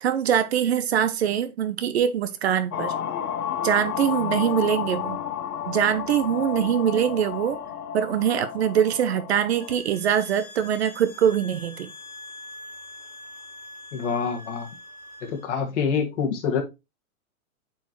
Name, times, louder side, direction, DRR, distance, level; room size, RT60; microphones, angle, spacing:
voice 1, 0.0-2.9 3.6-5.2 5.7-7.6 7.9-11.9, right 9 dB, 45° right, 0.8 m, -23 dB
sound 1, 2.7-9.8, left 9 dB, 80° left, 1.0 m, -31 dB
sound 2, 9.6-15.4, left 2 dB, 10° left, 0.4 m, -44 dB
voice 2, 13.9-14.7 15.2-16.6, left 6 dB, 55° left, 2.1 m, -26 dB
8.2 x 4.6 x 3.1 m
hypercardioid pair, 165°, 44 cm